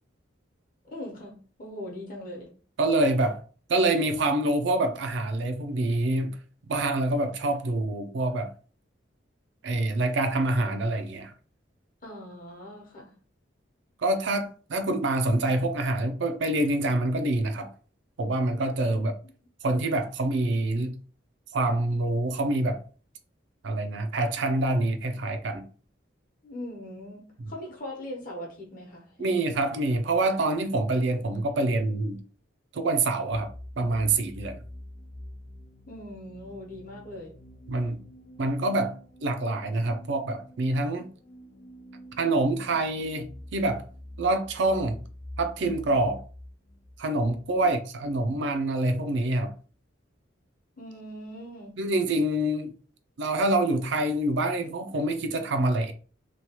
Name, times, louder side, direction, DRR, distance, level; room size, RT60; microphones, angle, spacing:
voice 1, 0.8-2.5 12.0-13.1 18.9-19.1 26.4-29.4 35.9-37.4 37.7-37.8 47.6-47.7 50.8-51.8, left 1 dB, 45° left, 0.9 m, -41 dB
voice 2, 2.8-3.4 3.7-6.4 6.7-8.5 9.6-11.3 14.0-17.7 18.2-19.1 19.6-20.9 21.5-22.8 23.6-25.7 27.4-27.5 29.2-32.2 32.7-34.6 37.7-38.0 38.4-41.1 42.2-43.9 44.2-45.0 45.4-46.2 47.0-49.5 51.8-52.7 53.2-55.9, right 2 dB, 65° right, 0.4 m, -26 dB
sound 1, 33.3-48.8, left 1 dB, 85° left, 0.7 m, -47 dB
3.0 x 2.3 x 2.8 m
head